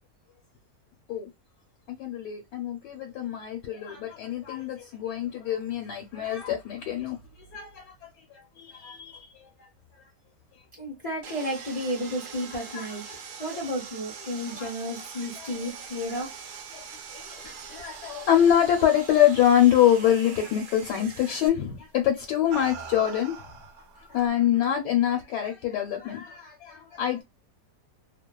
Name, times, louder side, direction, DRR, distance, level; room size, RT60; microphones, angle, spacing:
voice 1, 1.9-7.2 7.5-7.9 8.6-9.7 12.7-12.9 14.5-14.7 16.7-16.8 17.1-23.4 24.1-27.2, left 10 dB, 80° left, 1.2 m, -25 dB
voice 2, 10.8-13.1 13.4-16.4, equal, 55° left, 0.4 m, -32 dB
Sawing, 11.2-21.5, right 6 dB, 75° right, 1.1 m, -43 dB
sound 1, 16.4-19.3 19.7-20.1 21.3-21.5 22.2-24.3, right 5 dB, 55° right, 1.0 m, -44 dB
2.8 x 2.1 x 2.2 m
omnidirectional pair, 1.8 m